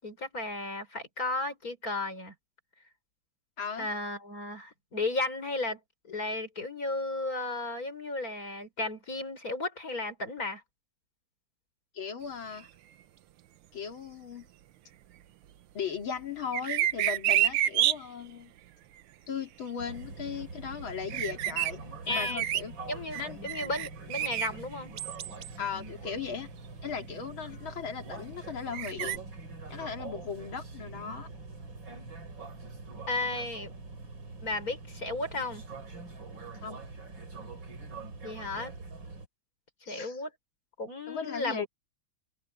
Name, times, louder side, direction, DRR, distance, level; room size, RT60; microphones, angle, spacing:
voice 1, 0.0-2.3 3.8-5.8 6.0-10.6 22.1-22.4 22.9-24.9 27.5-27.6 33.1-33.7 34.4-35.6 38.2-38.8 39.8-40.3 40.8-41.7, left 2 dB, 40° left, 5.5 m, -34 dB
voice 2, 3.6-3.9 11.9-12.7 13.7-14.4 15.7-18.5 19.3-21.8 22.1-22.7 23.2-23.4 25.6-26.5 26.8-29.2 29.7-31.3 36.6-36.8 39.9-40.2 41.1-41.7, left 6 dB, 70° left, 3.1 m, -37 dB
sound 1, 16.5-18.0 21.1-21.7 22.1-22.6 23.1-24.5 25.0-25.5 26.2-26.3 28.7-29.2, right 12 dB, 90° right, 1.7 m, -28 dB
sound 2, 19.8-39.3, right 3 dB, 65° right, 4.8 m, -44 dB
open air
omnidirectional pair, 2.3 m